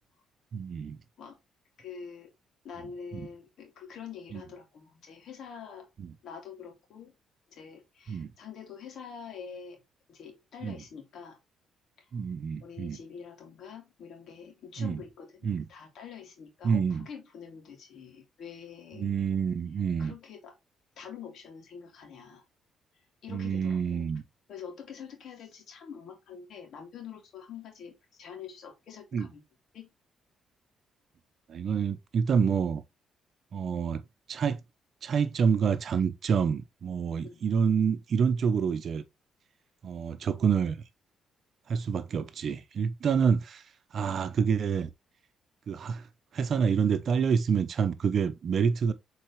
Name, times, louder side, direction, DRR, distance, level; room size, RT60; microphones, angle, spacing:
voice 1, 0.5-1.0 3.1-3.3 4.3-4.4 6.0-6.1 8.1-8.3 10.6-10.8 12.1-13.0 14.8-15.0 15.4-15.6 16.6-17.1 19.0-20.1 23.3-24.2 29.1-29.3 31.5-32.8 33.5-34.0 34.3-34.6 35.0-39.0 39.8-40.8 41.7-43.6 43.9-44.9 45.7-46.0 46.3-48.9, right 6 dB, 55° right, 0.8 m, -27 dB
voice 2, 1.8-2.3 2.6-5.9 6.2-7.1 7.5-9.8 10.1-11.4 12.6-19.1 20.0-20.5 21.0-22.4 23.2-24.1 24.5-29.4 29.7-29.9 37.2-37.4, left 7 dB, 70° left, 2.5 m, -45 dB
7.3 x 4.2 x 3.2 m
cardioid pair, 90°, 0 cm